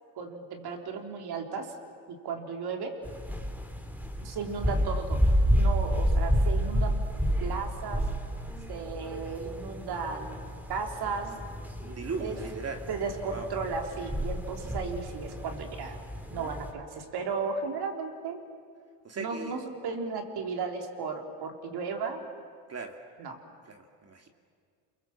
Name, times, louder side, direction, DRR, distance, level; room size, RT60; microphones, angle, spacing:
voice 1, 0.2-1.7 2.2-2.9 4.2-5.2 5.5-7.0 7.4-8.0 8.7-10.4 10.7-11.3 12.2-12.4 12.9-16.0 16.3-18.4 19.2-22.2 23.2-23.4, right 5 dB, 55° right, 4 dB, 3.6 m, -35 dB
sound 1, 3.0-16.7, equal, 5° right, 2.8 m, -30 dB
voice 2, 11.8-12.9 13.3-13.5 19.0-19.6 22.7-23.0 23.7-24.3, right 4 dB, 35° right, 3 dB, 2.5 m, -38 dB
29.5 x 23.0 x 7.3 m, 2.1 s
supercardioid pair, 80°, 45 cm